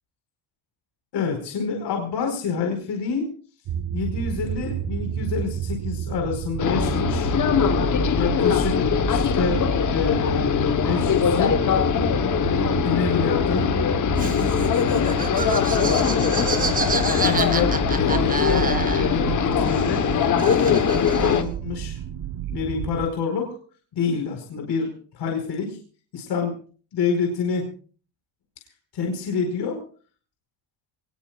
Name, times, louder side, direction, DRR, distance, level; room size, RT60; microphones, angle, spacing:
voice 1, 1.1-3.3 3.9-7.3 8.1-9.6 9.9-11.6 12.4-13.7 14.2-15.4 17.1-18.7 19.1-20.1 20.6-22.0 22.5-23.6 23.9-25.8 26.1-26.5 26.9-27.6 28.9-29.8, left 5 dB, 55° left, 2 dB, 4.9 m, -27 dB
sound 1, 3.7-23.1, right 9 dB, 45° right, 0.9 m, -31 dB
sound 2, 6.6-21.4, left 8 dB, 40° left, 1.3 m, -22 dB
Laughter, 14.2-19.3 19.6-21.5, right 4 dB, 15° right, 1.9 m, -29 dB
24.0 x 20.5 x 2.5 m, 0.41 s
cardioid pair, 135°, 48 cm